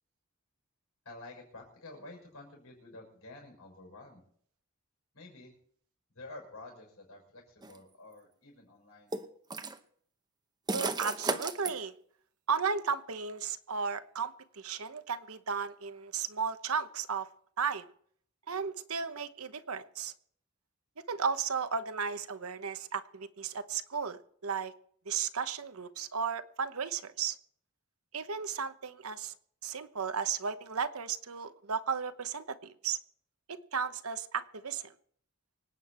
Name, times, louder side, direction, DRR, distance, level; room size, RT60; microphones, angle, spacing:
voice 1, 1.0-4.2 5.1-5.5 6.1-9.1, left 2 dB, 80° left, 0 dB, 6.2 m, -50 dB
sound 1, 7.6-7.8 9.1-9.8 10.7-11.7, right 3 dB, 20° right, 0.8 m, -33 dB
voice 2, 10.7-11.9 12.5-17.3 17.6-17.9 18.5-20.1 21.1-24.7 25.1-27.4 28.1-29.3 29.6-33.0 33.5-34.9, right 6 dB, 80° right, 11 dB, 1.0 m, -34 dB
25.0 x 9.3 x 4.4 m, 0.62 s
head